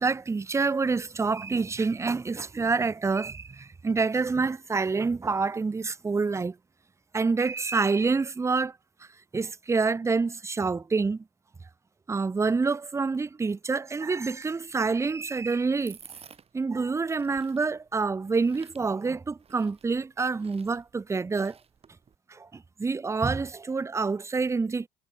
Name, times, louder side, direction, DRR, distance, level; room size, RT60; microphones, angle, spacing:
voice 1, 0.0-6.6 7.1-8.7 9.3-11.2 12.1-16.0 16.5-21.6 22.3-24.9, right 4 dB, 15° right, 0.6 m, -27 dB
sound 1, 14.7-22.2, right 6 dB, 35° right, 3.9 m, -54 dB
cardioid pair, 110°, 17 cm